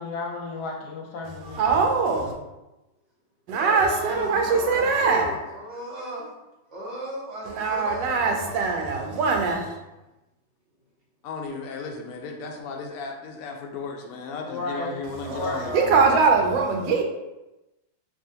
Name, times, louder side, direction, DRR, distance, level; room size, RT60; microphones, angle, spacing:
voice 1, 0.0-1.9 14.4-15.7, left 3 dB, 65° left, 0 dB, 1.1 m, -33 dB
voice 2, 1.5-2.3 3.5-5.3 7.5-9.8 15.7-17.0, right 4 dB, 75° right, 2 dB, 1.2 m, -22 dB
voice 3, 3.6-6.3 6.7-8.1 15.2-16.8, equal, 50° right, -6 dB, 0.9 m, -36 dB
voice 4, 4.2-5.1 8.2-8.5 11.2-16.1, left 4 dB, 85° left, 1 dB, 0.7 m, -36 dB
4.7 x 2.8 x 2.7 m, 0.99 s
omnidirectional pair, 2.2 m